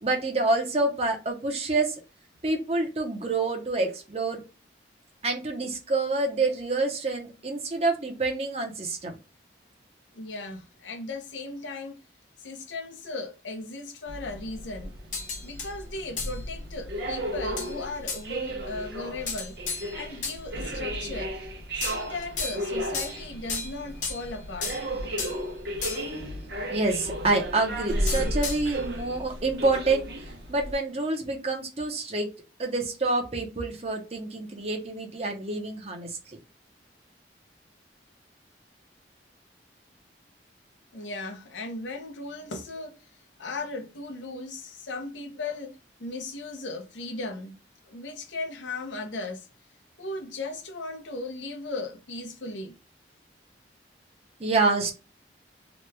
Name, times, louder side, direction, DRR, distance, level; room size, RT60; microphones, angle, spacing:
voice 1, 0.0-1.9 2.4-4.4 5.2-9.1 26.7-30.1 30.5-32.3 32.6-36.1 54.4-54.9, right 3 dB, 35° right, 0.7 m, -27 dB
voice 2, 10.1-12.0 12.4-14.9 15.4-19.6 19.9-21.3 21.8-24.8 40.9-43.0 43.4-47.5 47.9-49.5 50.0-52.7, left 2 dB, 85° left, 0.7 m, -37 dB
sound 1, 14.1-30.7, equal, 65° right, 0.8 m, -34 dB
sound 2, 15.1-15.7 16.2-16.4 17.6-17.7 18.1-18.2 19.3-20.4 21.8-22.7 22.9-24.3 24.6-25.4 25.8-26.2 28.1-28.8, left 4 dB, 40° left, 0.8 m, -34 dB
3.0 x 2.3 x 3.2 m
head